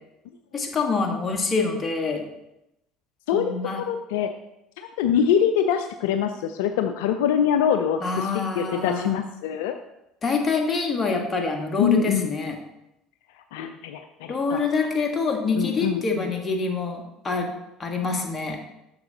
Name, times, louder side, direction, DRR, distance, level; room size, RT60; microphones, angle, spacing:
voice 1, 0.5-2.2 3.3-3.8 8.0-9.1 10.2-12.6 14.3-17.5 17.8-18.6, left 4 dB, 30° left, 3 dB, 1.4 m, -26 dB
voice 2, 3.3-4.3 4.8-9.7 11.8-12.3 13.5-14.6 15.6-16.3, left 8 dB, 75° left, 7 dB, 0.4 m, -24 dB
7.7 x 6.6 x 2.9 m, 0.88 s
hypercardioid pair, 70°, 0 cm